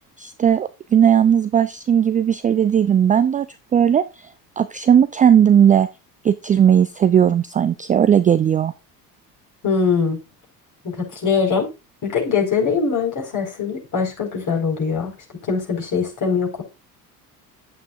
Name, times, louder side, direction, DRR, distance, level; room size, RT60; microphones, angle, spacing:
voice 1, 0.2-3.5 3.7-4.0 4.6-5.9 6.2-8.7, right 9 dB, 20° right, 0.4 m, -16 dB
voice 2, 9.6-10.2 10.8-11.7 12.0-15.1 15.4-16.6, left 5 dB, 40° left, 4.9 m, -22 dB
9.9 x 8.3 x 2.5 m
hypercardioid pair, 65°, 47 cm